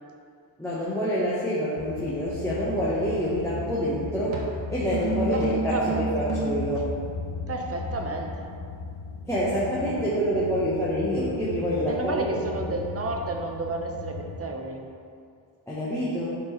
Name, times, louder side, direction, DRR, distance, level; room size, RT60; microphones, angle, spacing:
voice 1, 0.6-6.9 9.3-12.4 12.7-12.8 15.7-16.3, equal, 5° left, -9 dB, 0.9 m, -27 dB
sound 1, 1.8-14.4, left 4 dB, 65° left, 0.8 m, -36 dB
sound 2, 3.4-3.7 4.3-6.7, right 5 dB, 80° right, 1.0 m, -30 dB
voice 2, 5.7-6.1 7.5-8.5 9.5-10.4 11.8-14.8, right 2 dB, 30° right, 2 dB, 0.7 m, -32 dB
7.3 x 4.4 x 3.1 m, 2.3 s
cardioid pair, 95°, 48 cm